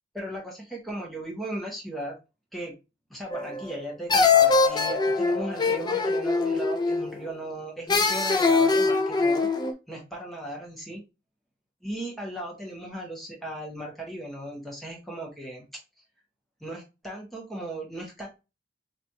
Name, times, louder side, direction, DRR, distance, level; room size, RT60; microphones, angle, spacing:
voice 1, 0.1-2.1 2.5-2.7 3.1-9.5 9.9-11.0 11.8-15.7 16.6-18.3, right 1 dB, ahead, -2 dB, 1.0 m, -37 dB
sound 1, 3.3-3.8 4.1-7.2 7.9-9.7, left 4 dB, 20° left, 0.4 m, -22 dB
3.1 x 2.4 x 4.1 m, 0.27 s
head